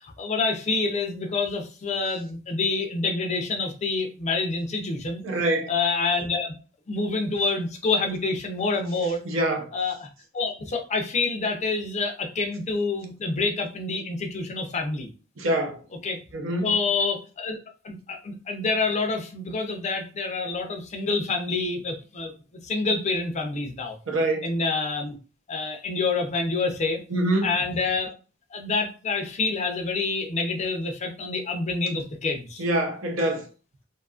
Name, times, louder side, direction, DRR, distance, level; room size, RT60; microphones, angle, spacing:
voice 1, 0.0-5.2 5.7-6.5 6.9-9.2 9.7-10.1 10.3-15.1 16.0-16.2 16.6-17.6 17.8-22.3 22.6-24.0 24.4-25.2 25.5-27.0 27.4-28.1 28.5-32.6, left 3 dB, 35° left, 0.4 m, -27 dB
voice 2, 5.2-5.7 9.2-9.7 15.4-15.8 16.3-16.8 24.1-24.5 27.1-27.5 32.6-33.4, right 1 dB, 75° right, 0.7 m, -25 dB
2.6 x 2.4 x 2.4 m
head